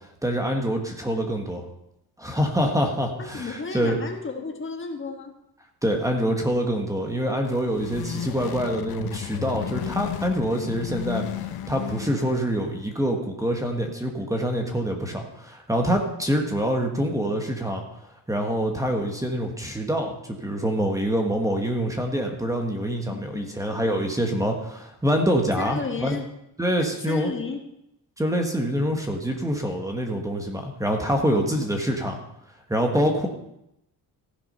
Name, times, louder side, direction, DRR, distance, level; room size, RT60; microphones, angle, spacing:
voice 1, 0.2-1.6 2.2-4.0 5.8-17.8 18.3-26.2 26.6-27.3 28.2-32.2 32.7-33.3, equal, 10° right, 3 dB, 1.3 m, -25 dB
voice 2, 3.2-5.3 23.1-23.5 25.6-26.2 27.1-27.6 31.3-31.5 31.7-31.8, left 4 dB, 30° left, 4 dB, 1.3 m, -33 dB
sound 1, 7.3-12.6, left 11 dB, 70° left, 0.8 m, -33 dB
15.0 x 7.0 x 5.4 m, 0.83 s
wide cardioid pair, 150°, 37 cm